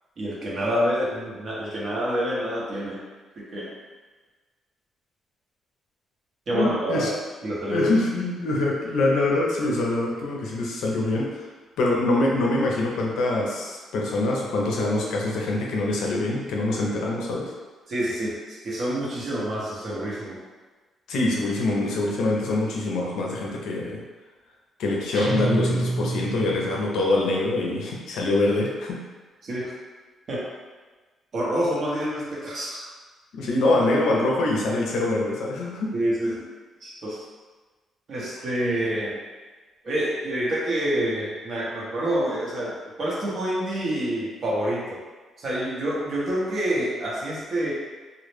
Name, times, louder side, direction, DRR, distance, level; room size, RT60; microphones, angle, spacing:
voice 1, 0.2-3.0 3.4-3.7 6.5-7.1 7.4-7.9 17.9-20.4 29.4-29.7 30.3-30.5 31.3-32.8 35.9-36.5 36.8-37.2 38.1-39.2 39.8-45.0 45.4-47.7, right 1 dB, 50° right, -5 dB, 0.7 m, -27 dB
voice 2, 6.5-7.1 7.7-11.5 11.8-17.5 21.1-24.0 24.8-29.0 33.3-35.9, left 2 dB, 80° left, -2 dB, 0.4 m, -24 dB
sound 1, 25.1-26.8, right 2 dB, 80° right, 0.8 m, -27 dB
2.0 x 2.0 x 3.1 m, 1.3 s
cardioid pair, 90°, 0 cm